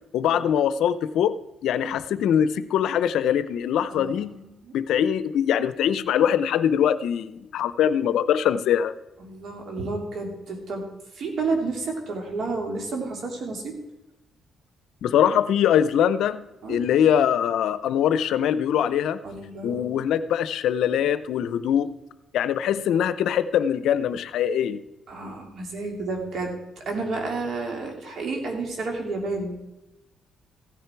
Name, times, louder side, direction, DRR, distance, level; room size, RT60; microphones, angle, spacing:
voice 1, 0.1-1.4 1.6-4.3 4.7-8.9 15.0-19.2 19.6-21.9 22.3-24.8, left 9 dB, 80° left, 14 dB, 0.6 m, -22 dB
voice 2, 3.9-4.7 9.2-10.9 11.1-13.7 16.6-16.8 19.2-20.1 25.1-29.6, right 3 dB, 60° right, 2 dB, 3.1 m, -31 dB
15.5 x 10.0 x 4.5 m, 0.97 s
cardioid pair, 90°, 0 cm